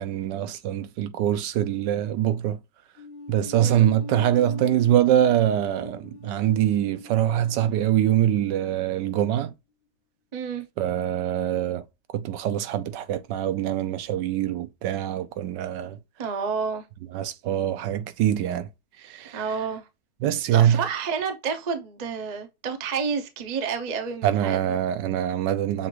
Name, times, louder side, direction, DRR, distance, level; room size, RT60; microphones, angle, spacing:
voice 1, 0.0-2.6 3.3-9.5 10.8-11.8 12.1-16.0 17.1-18.7 19.0-19.4 20.2-20.8 24.2-25.9, right 11 dB, 80° right, 1.2 m, -24 dB
sound 1, 3.0-9.4, left 3 dB, 80° left, 1.5 m, -42 dB
voice 2, 10.3-10.6 16.2-16.8 19.3-19.8 20.5-24.8, right 6 dB, 50° right, 0.5 m, -30 dB
7.1 x 2.5 x 3.0 m
omnidirectional pair, 1.9 m